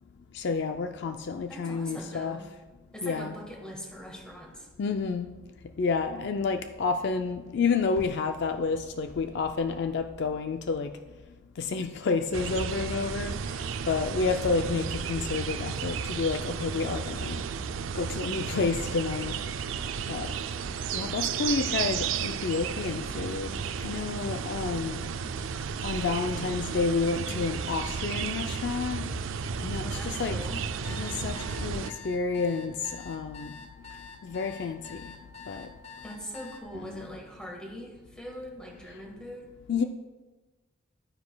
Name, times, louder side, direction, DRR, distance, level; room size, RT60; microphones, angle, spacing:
voice 1, 0.3-2.4 3.0-3.3 4.8-5.3 5.8-10.9 11.6-13.6 13.9-17.5 18.0-19.4 20.1-20.3 20.9-25.0 25.8-29.1 29.6-30.4 30.9-33.5 34.2-35.0 35.5-35.7 36.8-37.0 39.7-39.8, left 4 dB, 55° left, 7 dB, 0.4 m, -30 dB
voice 2, 1.5-2.4 2.9-4.7 29.8-30.6 36.0-39.5, equal, 5° left, 0 dB, 1.5 m, -42 dB
sound 1, 12.3-31.9, right 6 dB, 75° right, 0.4 m, -33 dB
sound 2, 30.8-36.6, left 5 dB, 30° left, 0.9 m, -46 dB
12.5 x 9.5 x 2.2 m, 1.2 s
head